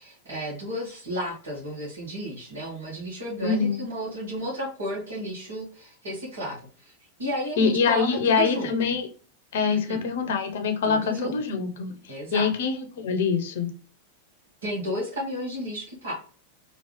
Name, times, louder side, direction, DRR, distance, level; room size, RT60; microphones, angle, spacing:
voice 1, 0.0-6.9 7.2-8.7 9.7-10.0 10.8-11.4 12.1-12.5 14.6-16.1, equal, 60° right, -6 dB, 2.1 m, -33 dB
voice 2, 3.4-3.8 7.6-9.1 9.5-13.7, left 5 dB, 55° left, 6 dB, 0.9 m, -25 dB
4.4 x 2.9 x 3.2 m, 0.38 s
figure-of-eight pair, 90°, 0 cm